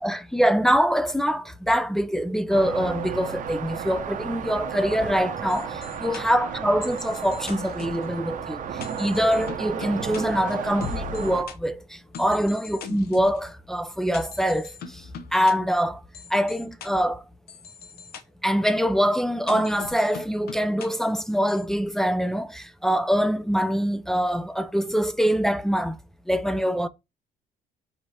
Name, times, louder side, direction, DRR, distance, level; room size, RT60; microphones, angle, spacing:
voice 1, 0.0-15.0 15.3-16.0 16.3-17.2 18.4-26.0 26.3-26.9, equal, ahead, 0.3 m, -24 dB
sound 1, 2.5-11.4, right 8 dB, 50° right, 0.7 m, -33 dB
sound 2, 5.5-11.6 12.1-13.4 14.1-15.5 16.1-16.9 17.5-18.2 19.5-20.9 21.5-21.6, left 6 dB, 65° left, 0.7 m, -41 dB
4.8 x 3.3 x 2.7 m
cardioid pair, 110°, 17 cm